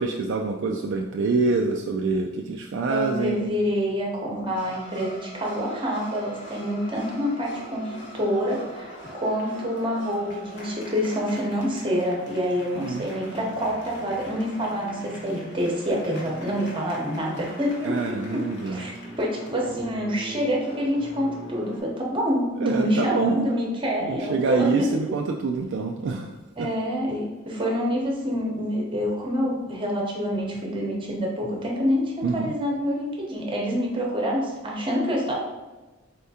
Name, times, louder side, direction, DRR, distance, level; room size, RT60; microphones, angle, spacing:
voice 1, 0.0-3.5 12.8-13.1 17.8-18.9 22.6-23.5 24.0-26.3 26.6-26.7 32.2-32.5, right 4 dB, 55° right, 2 dB, 0.3 m, -26 dB
voice 2, 2.9-24.9 26.6-35.4, equal, 25° right, -2 dB, 0.9 m, -27 dB
sound 1, 4.6-21.8, equal, 55° left, 1.2 m, -41 dB
4.3 x 3.5 x 2.8 m, 1.1 s
head